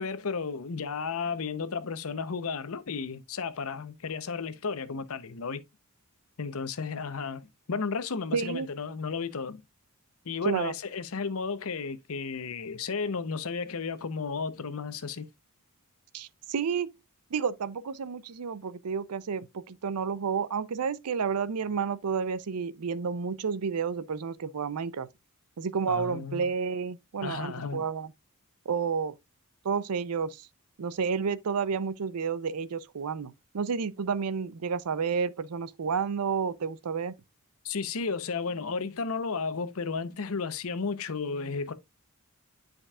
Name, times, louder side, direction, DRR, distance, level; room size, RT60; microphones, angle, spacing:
voice 1, 0.0-5.6 6.4-9.6 10.3-15.3 25.9-26.5 27.2-27.8 37.6-41.7, left 5 dB, 70° left, 0.8 m, -33 dB
voice 2, 8.3-8.7 10.5-10.7 16.1-16.9 17.3-25.1 25.6-28.1 28.7-29.1 29.6-30.4 30.8-37.1, right 6 dB, 85° right, 0.5 m, -30 dB
10.0 x 5.1 x 2.3 m
head